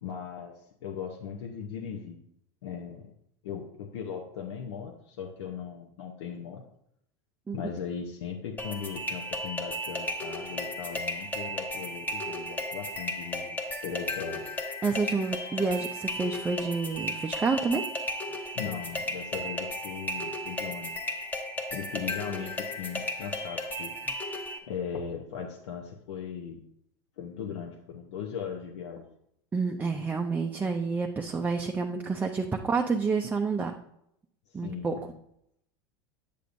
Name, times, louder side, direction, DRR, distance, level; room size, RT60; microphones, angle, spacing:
voice 1, 0.0-2.2 2.6-3.1 3.4-6.6 7.5-13.6 13.8-14.4 18.5-21.0 21.7-23.9 24.7-26.6 27.2-29.0 34.5-35.1, left 7 dB, 85° left, 1 dB, 0.8 m, -38 dB
sound 1, 8.6-24.6, left 1 dB, 10° left, 0.8 m, -35 dB
voice 2, 14.8-17.9 29.5-33.8 34.5-34.9, right 4 dB, 10° right, 3 dB, 0.4 m, -29 dB
8.3 x 6.7 x 2.6 m, 0.76 s
supercardioid pair, 125°, 14 cm